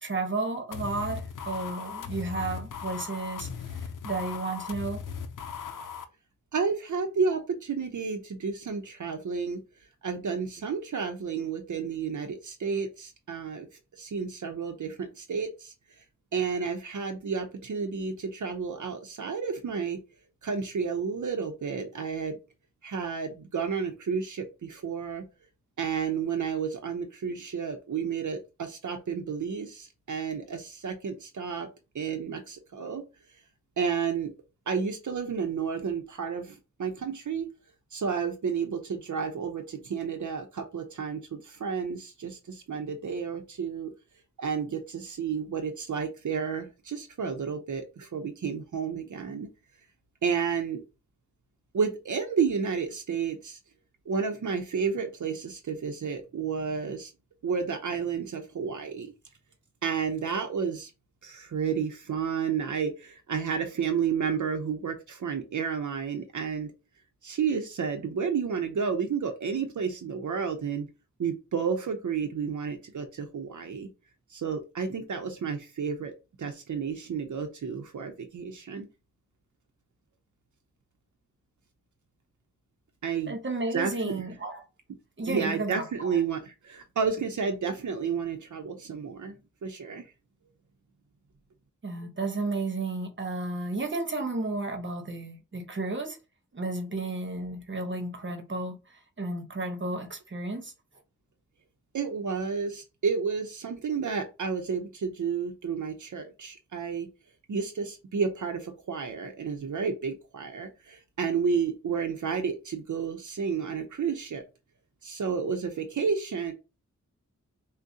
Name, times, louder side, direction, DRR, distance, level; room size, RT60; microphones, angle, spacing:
voice 1, 0.0-3.5 4.0-5.0 83.3-84.6 85.2-86.2 91.8-96.2 96.5-98.8 99.2-100.7, right 2 dB, 40° right, 1.0 m, -32 dB
sound 1, 0.7-6.1, left 6 dB, 80° left, 0.6 m, -38 dB
voice 2, 6.5-9.6 10.0-13.7 13.9-15.7 16.3-20.0 20.4-22.4 22.8-25.3 25.8-31.7 31.9-33.0 33.8-34.3 34.7-37.5 37.9-43.9 44.4-49.5 50.2-50.8 51.7-53.6 54.1-57.1 57.4-59.1 59.8-60.9 61.2-66.7 67.2-70.9 71.2-73.9 74.3-76.1 76.4-78.9 83.0-83.4 83.7-84.3 85.3-89.3 89.6-90.0 101.9-107.1 107.5-114.4 115.0-116.5, right 6 dB, 70° right, 0.7 m, -31 dB
6.1 x 2.2 x 2.7 m
wide cardioid pair, 105°, 31 cm